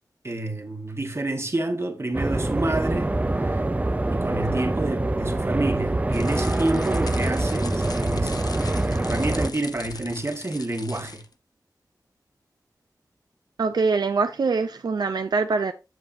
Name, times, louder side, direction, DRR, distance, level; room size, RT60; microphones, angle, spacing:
voice 1, 0.2-3.7 4.1-8.4 8.7-11.2, right 2 dB, 40° right, 1.4 m, -29 dB
sound 1, 2.1-9.5, right 2 dB, 20° right, 0.5 m, -25 dB
sound 2, 6.1-11.3, left 4 dB, 65° left, 0.7 m, -40 dB
voice 2, 13.6-15.7, right 4 dB, 80° right, 0.4 m, -23 dB
8.0 x 6.9 x 2.6 m
wide cardioid pair, 80°, 7 cm